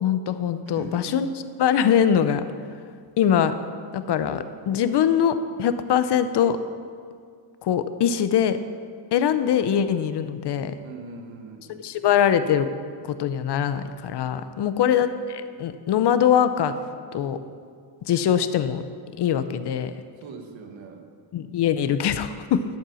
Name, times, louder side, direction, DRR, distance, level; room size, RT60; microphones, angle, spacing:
voice 1, 0.0-1.3 1.6-2.4 3.2-3.6 3.9-6.6 7.6-8.6 9.1-10.7 11.7-12.7 13.0-16.8 17.1-17.4 18.0-18.8 19.2-19.9 21.3-22.6, left 9 dB, 60° left, 11 dB, 0.8 m, -22 dB
voice 2, 0.7-1.2 10.8-11.9 14.7-14.9 20.2-21.1, right 4 dB, 75° right, 4 dB, 1.5 m, -41 dB
12.0 x 7.6 x 6.3 m, 2.1 s
cardioid pair, 115°, 46 cm